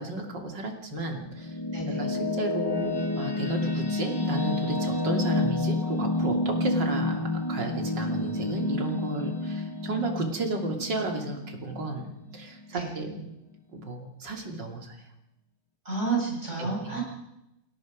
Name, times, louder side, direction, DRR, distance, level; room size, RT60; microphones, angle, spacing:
voice 1, 0.0-1.6 1.9-13.3 13.7-15.1 16.6-17.0, right 2 dB, 65° right, 3 dB, 3.5 m, -33 dB
sound 1, 1.1-12.3, left 2 dB, 15° left, 1.5 m, -29 dB
voice 2, 1.7-2.0 12.7-12.9 15.9-17.0, right 4 dB, 35° right, -3 dB, 7.2 m, -30 dB
30.0 x 17.0 x 5.3 m, 0.89 s
omnidirectional pair, 2.1 m